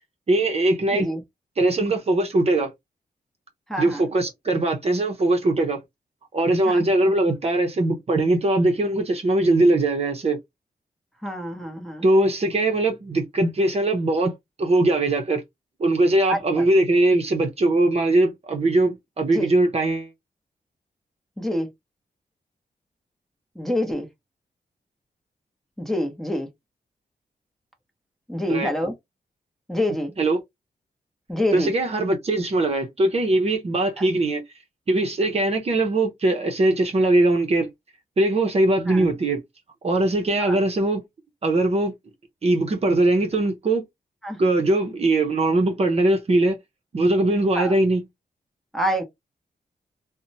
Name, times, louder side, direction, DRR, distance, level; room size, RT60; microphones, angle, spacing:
voice 1, 0.3-1.1 1.6-2.7 3.8-5.8 6.3-10.4 12.0-15.4 15.8-20.1 28.5-28.7 30.2-30.4 31.5-34.4 34.9-37.7 38.2-39.4 39.8-41.0 41.4-41.9 42.4-43.8 44.4-46.6 46.9-48.0, right 2 dB, 45° right, 0.7 m, -21 dB
voice 2, 0.9-1.2 3.7-4.1 6.7-6.9 11.2-12.1 16.3-16.7 19.3-19.5 21.4-21.7 23.6-24.1 25.8-26.5 28.3-28.9 29.7-30.1 31.3-31.7 34.0-34.1 38.9-39.1 40.4-40.6 44.2-44.4 47.5-47.7 48.7-49.0, equal, ahead, 0.8 m, -26 dB
2.8 x 2.1 x 2.6 m
wide cardioid pair, 110°, 15 cm